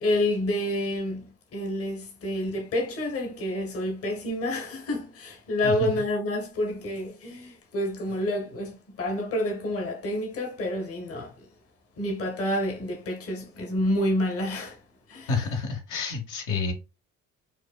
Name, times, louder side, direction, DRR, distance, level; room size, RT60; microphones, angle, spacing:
voice 1, 0.0-11.3 12.0-14.8 15.1-15.3, left 1 dB, 50° left, 1.0 m, -28 dB
voice 2, 15.3-16.7, left 4 dB, 80° left, 1.1 m, -29 dB
4.7 x 2.2 x 2.2 m
cardioid pair, 90°, 30 cm